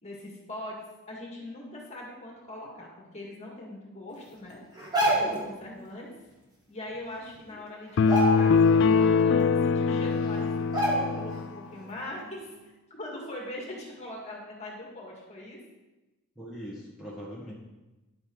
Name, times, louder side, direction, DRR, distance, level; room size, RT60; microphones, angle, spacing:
voice 1, 0.0-0.8 1.1-4.6 5.1-6.1 6.7-15.6, left 1 dB, 30° left, -2 dB, 2.2 m, -41 dB
sound 1, 4.8-5.5 6.9-7.0 7.4-7.6 8.0-8.8 9.2-9.3 10.1-10.2 10.7-11.4 11.7-11.9, right 1 dB, 20° right, 1.6 m, -27 dB
sound 2, 8.0-11.5, left 5 dB, 55° left, 0.3 m, -22 dB
voice 2, 16.3-17.5, equal, ahead, -6 dB, 1.6 m, -41 dB
10.0 x 7.9 x 4.0 m, 1.1 s
head